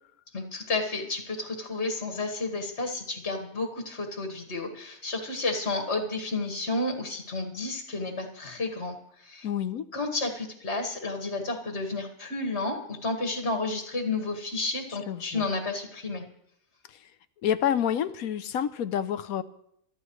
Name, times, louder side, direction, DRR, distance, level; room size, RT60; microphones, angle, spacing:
voice 1, 0.3-9.5 9.9-16.2, left 3 dB, 50° left, 3 dB, 2.0 m, -31 dB
voice 2, 9.4-9.9 15.1-15.5 16.9-17.1 17.4-19.4, left 9 dB, 80° left, 13 dB, 1.2 m, -28 dB
24.5 x 13.5 x 3.1 m, 0.72 s
omnidirectional pair, 1.5 m